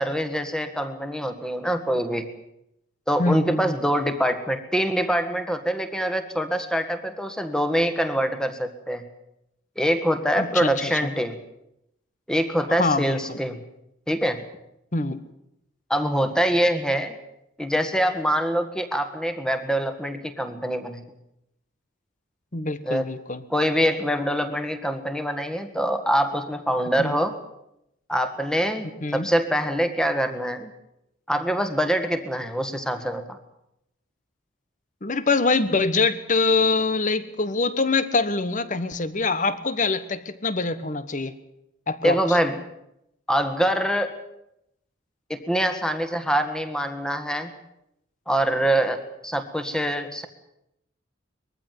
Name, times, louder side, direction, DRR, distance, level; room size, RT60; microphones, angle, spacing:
voice 1, 0.0-2.3 3.1-9.0 9.8-11.4 12.3-13.6 14.1-14.4 15.9-17.2 17.6-21.0 22.8-23.1 23.5-27.4 28.1-30.7 31.3-33.4 42.0-42.6 43.3-44.2 45.3-47.5 48.3-50.3, equal, 5° left, 8 dB, 1.7 m, -24 dB
voice 2, 3.2-3.7 10.4-11.1 12.7-13.4 14.9-15.2 22.5-23.4 27.0-27.2 29.0-29.3 35.0-41.3 41.9-42.4, left 3 dB, 40° left, 14 dB, 1.3 m, -24 dB
21.5 x 14.5 x 9.5 m, 0.82 s
head